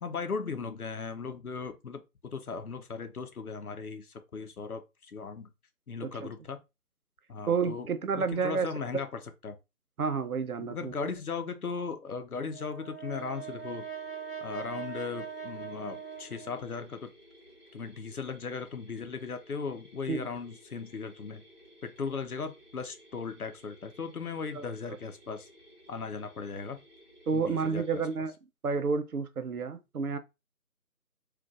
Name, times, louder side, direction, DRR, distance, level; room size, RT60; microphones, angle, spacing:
voice 1, 0.0-5.5 5.9-6.6 7.3-7.9 8.1-9.6 10.6-13.9 14.4-17.1 17.7-21.4 21.8-25.5 25.9-26.8 27.3-28.0, left 5 dB, 75° left, 0.7 m, -37 dB
voice 2, 7.5-8.7 10.0-11.1 20.1-20.3 24.5-24.6 27.3-28.3 28.6-30.2, right 5 dB, 70° right, 0.7 m, -30 dB
Brass instrument, 12.5-16.9, right 7 dB, 40° left, 0.6 m, -41 dB
Mechanisms, 13.1-28.1, equal, 5° left, 1.2 m, -57 dB
3.8 x 2.5 x 2.4 m
figure-of-eight pair, 160°, 45 cm